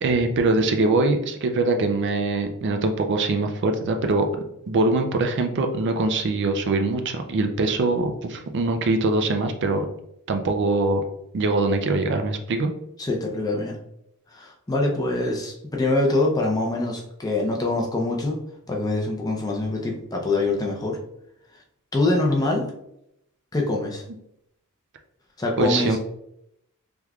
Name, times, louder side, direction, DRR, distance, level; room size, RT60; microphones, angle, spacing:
voice 1, 0.0-4.3 4.7-9.9 10.3-11.0 11.3-12.7 25.6-26.0, right 2 dB, 55° right, 6 dB, 0.4 m, -23 dB
voice 2, 13.0-13.8 14.3-18.4 18.7-21.0 21.9-22.7 23.5-24.0 25.4-26.0, left 2 dB, 15° left, 0 dB, 0.5 m, -24 dB
3.5 x 3.0 x 2.3 m, 0.77 s
head